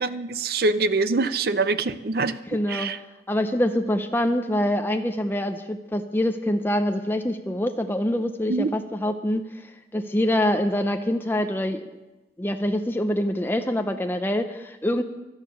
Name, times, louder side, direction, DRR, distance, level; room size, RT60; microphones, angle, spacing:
voice 1, 0.0-2.4 2.7-3.0 8.5-8.7, right 3 dB, 60° right, 13 dB, 0.6 m, -24 dB
voice 2, 2.5-2.9 3.3-11.8 12.4-15.0, left 1 dB, 10° left, 6 dB, 0.6 m, -25 dB
13.0 x 11.0 x 6.5 m, 1.1 s
head